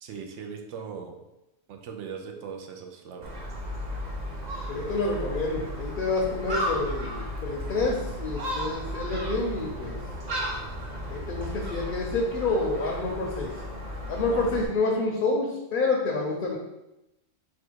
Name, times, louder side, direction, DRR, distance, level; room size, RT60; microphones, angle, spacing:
voice 1, 0.0-1.2 1.7-3.3 14.2-14.5, right 6 dB, 75° right, 3 dB, 0.9 m, -39 dB
Gull seagull, 3.2-14.7, equal, 40° right, 0.8 m, -34 dB
voice 2, 4.7-10.0 11.1-13.5 14.1-16.6, left 3 dB, 55° left, -1 dB, 0.7 m, -28 dB
4.2 x 2.3 x 4.6 m, 0.94 s
omnidirectional pair, 1.3 m